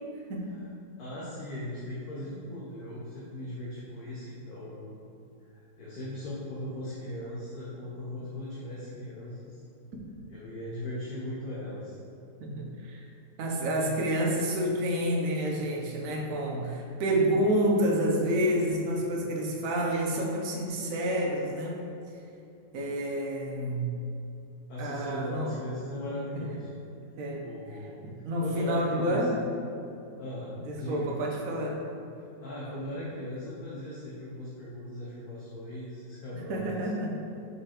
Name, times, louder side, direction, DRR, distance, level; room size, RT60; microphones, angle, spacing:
voice 1, 1.0-4.9 5.4-9.6 10.3-12.0 24.7-26.7 27.4-29.3 30.2-31.1 32.2-36.9, left 1 dB, 55° left, -8 dB, 1.4 m, -38 dB
voice 2, 12.4-13.0 13.4-21.8 22.7-23.9 24.8-25.6 27.2-27.5 28.0-29.4 30.6-31.8 36.3-37.1, right 1 dB, 55° right, -1 dB, 1.1 m, -29 dB
5.1 x 5.0 x 4.3 m, 2.7 s
omnidirectional pair, 2.0 m